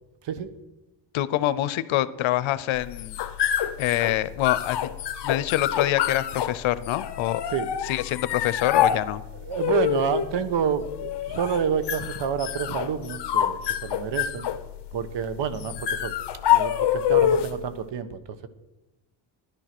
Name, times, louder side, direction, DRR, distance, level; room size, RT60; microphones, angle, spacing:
voice 1, 1.1-3.2 3.8-4.9 5.2-7.4 7.9-9.2, left 14 dB, 85° left, 16 dB, 0.8 m, -25 dB
sound 1, 2.8-17.7, left 10 dB, 60° left, 1.0 m, -27 dB
voice 2, 9.4-14.5 14.9-16.1 16.5-18.5, right 7 dB, 65° right, 13 dB, 1.2 m, -28 dB
11.5 x 10.5 x 6.0 m, 1.0 s
cardioid pair, 110°, 47 cm